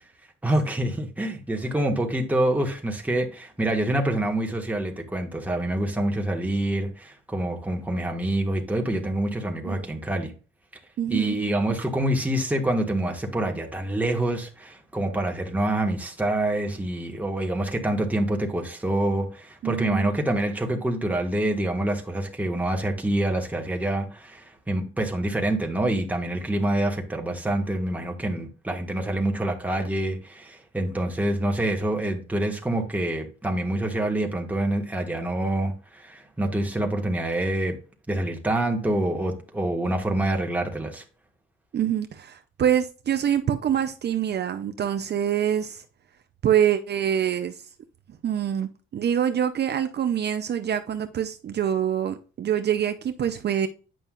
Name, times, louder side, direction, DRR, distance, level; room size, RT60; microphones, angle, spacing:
voice 1, 0.4-10.3 11.1-37.8 38.1-41.0, right 1 dB, 5° right, 1.6 m, -26 dB
voice 2, 11.0-11.4 19.6-20.1 41.7-45.8 46.4-47.7 48.2-53.7, right 9 dB, 55° right, 0.7 m, -25 dB
9.3 x 5.4 x 2.5 m
cardioid pair, 115°, 21 cm